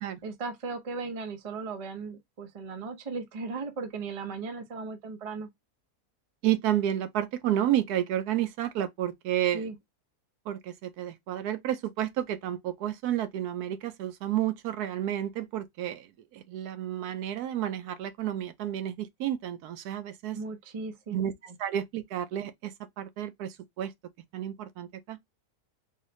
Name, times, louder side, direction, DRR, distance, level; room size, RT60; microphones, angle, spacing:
voice 1, 0.2-5.5 9.5-9.8 20.3-21.2 21.4-21.5, right 4 dB, 40° right, 0.5 m, -37 dB
voice 2, 6.4-9.7 10.5-20.4 21.1-21.3 21.6-23.9 24.3-25.2, right 11 dB, 80° right, 1.1 m, -31 dB
3.9 x 2.6 x 3.1 m
omnidirectional pair, 1.7 m